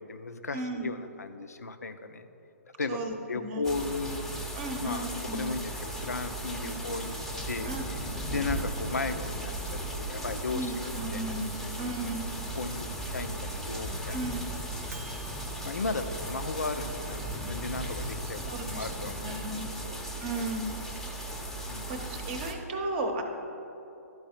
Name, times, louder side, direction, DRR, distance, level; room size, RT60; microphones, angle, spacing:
voice 1, 0.0-2.3 2.8-4.2 4.8-8.0 8.3-11.2 11.6-11.8 12.5-12.9 13.1-14.2 15.6-19.4 19.8-20.0 21.7-22.1, left 3 dB, 85° left, 9 dB, 0.5 m, -35 dB
voice 2, 0.5-1.0 2.9-3.1 3.4-3.6 4.6-5.5 6.5-6.8 7.6-7.8 10.5-12.3 14.1-14.5 18.2-18.9 19.2-19.7 20.2-20.7 21.9-23.2, right 2 dB, 40° right, 4 dB, 0.8 m, -35 dB
sound 1, 3.6-22.5, right 1 dB, 5° left, 0.7 m, -36 dB
Microwave oven, 10.8-15.4, right 4 dB, 65° right, 0.4 m, -45 dB
12.0 x 4.7 x 4.4 m, 2.9 s
figure-of-eight pair, 125°, 8 cm